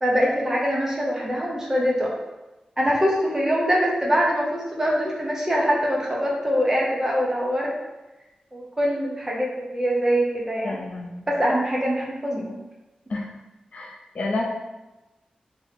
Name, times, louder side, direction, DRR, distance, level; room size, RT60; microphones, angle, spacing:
voice 1, 0.0-2.1 2.8-7.7 8.5-10.8 11.3-12.5, equal, 20° right, -3 dB, 0.7 m, -23 dB
voice 2, 10.6-11.3 13.1-13.3 13.7-14.4, left 2 dB, 55° left, -1 dB, 0.6 m, -30 dB
2.8 x 2.8 x 4.1 m, 1.0 s
wide cardioid pair, 160°, 3 cm